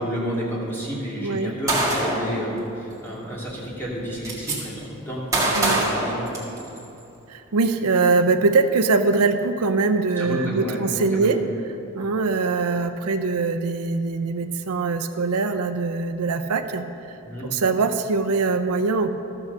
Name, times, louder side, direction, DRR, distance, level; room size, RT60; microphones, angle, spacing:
voice 1, 0.0-6.3 10.2-11.3 17.2-17.5, equal, 10° left, -7 dB, 2.4 m, -30 dB
voice 2, 1.2-1.5 5.6-5.9 7.3-11.4 11.9-16.8 17.5-19.1, right 3 dB, 85° right, 8 dB, 0.6 m, -22 dB
Gunshot gunfire, 1.7-2.3 3.5-3.6 3.9-4.6 5.3-6.8, right 2 dB, 15° right, 1.7 m, -23 dB
13.5 x 6.0 x 6.6 m, 2.9 s
head